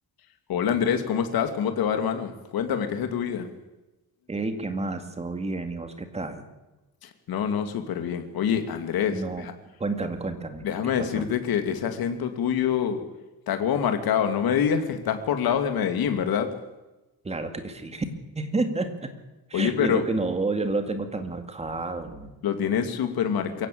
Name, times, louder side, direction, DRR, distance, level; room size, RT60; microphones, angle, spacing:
voice 1, 0.5-3.5 7.0-9.5 10.6-13.0 13.5-16.5 19.5-20.1 22.4-23.7, left 8 dB, 65° left, 7 dB, 2.6 m, -26 dB
voice 2, 4.3-6.4 9.1-9.5 9.8-10.7 11.1-11.3 17.2-18.1 18.4-19.1 19.5-22.3, right 3 dB, 15° right, 7 dB, 2.1 m, -30 dB
22.5 x 16.0 x 8.6 m, 1.1 s
cardioid pair, 165°, 39 cm